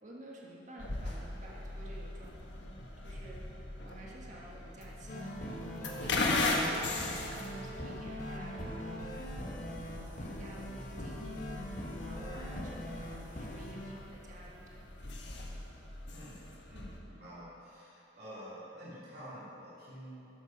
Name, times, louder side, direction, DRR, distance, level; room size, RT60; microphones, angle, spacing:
voice 1, 0.0-3.4 3.8-5.4 6.0-9.5 9.9-14.9, right 1 dB, 40° right, -3 dB, 1.7 m, -51 dB
sound 1, 0.8-17.0, left 2 dB, 65° left, 1.3 m, -39 dB
sound 2, 5.1-13.9, left 1 dB, 40° left, 1.4 m, -42 dB
Brass instrument, 5.1-9.3, right 4 dB, 80° right, 1.8 m, -49 dB
voice 2, 16.7-20.3, equal, 55° right, -9 dB, 3.2 m, -48 dB
14.0 x 8.1 x 6.1 m, 2.8 s
head